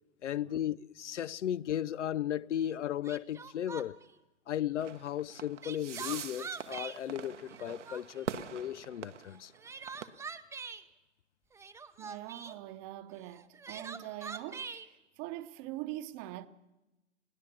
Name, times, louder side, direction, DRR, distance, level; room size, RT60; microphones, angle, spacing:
voice 1, 0.2-4.0 4.5-9.5, left 11 dB, 80° left, 0.6 m, -35 dB
Crying sobbing, 2.6-2.7 3.0-4.1 5.3-7.0 7.4-8.2 9.3-10.8 11.5-12.6 13.3-14.9, right 5 dB, 10° right, 0.7 m, -44 dB
sound 1, 4.8-10.0, right 7 dB, 80° right, 1.2 m, -43 dB
voice 2, 12.0-14.9 15.2-16.5, right 15 dB, 35° right, 1.0 m, -43 dB
21.5 x 16.5 x 7.2 m
hypercardioid pair, 110°, 35 cm